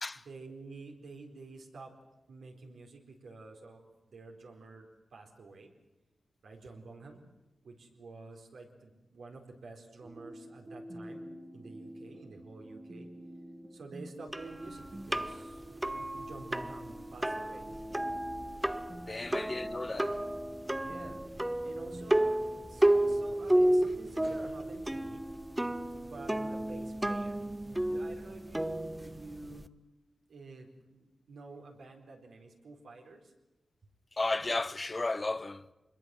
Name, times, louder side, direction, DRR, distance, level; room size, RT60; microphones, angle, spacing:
voice 1, 0.1-1.9 2.3-3.8 4.1-5.7 6.4-7.2 7.6-11.3 11.5-13.1 13.7-17.7 19.0-19.3 20.7-21.2 21.6-25.3 26.0-29.7 30.3-33.3, right 3 dB, 85° right, 4.3 m, -49 dB
sound 1, 10.0-27.0, equal, 30° right, 1.9 m, -48 dB
sound 2, 14.3-29.7, right 1 dB, 10° right, 0.8 m, -32 dB
voice 2, 19.1-20.2 34.1-35.7, left 2 dB, 30° left, 0.8 m, -34 dB
25.0 x 21.5 x 7.8 m
wide cardioid pair, 85°, 0 cm